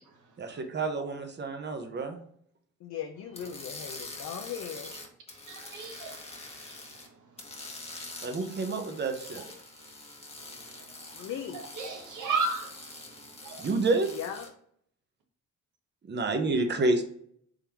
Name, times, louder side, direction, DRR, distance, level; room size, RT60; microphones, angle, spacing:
voice 1, 0.4-2.2 8.2-9.4 13.6-14.1 16.1-17.0, right 3 dB, 35° right, 0.8 m, -29 dB
voice 2, 2.8-4.9 11.1-11.6 14.1-14.5, left 8 dB, 60° left, 0.6 m, -38 dB
sound 1, 3.3-7.1 7.4-14.5, left 2 dB, 20° left, 1.1 m, -45 dB
voice 3, 5.5-6.2 11.5-12.7 13.4-13.7, right 4 dB, 75° right, 1.1 m, -32 dB
3.6 x 3.4 x 2.9 m
cardioid pair, 75°, 31 cm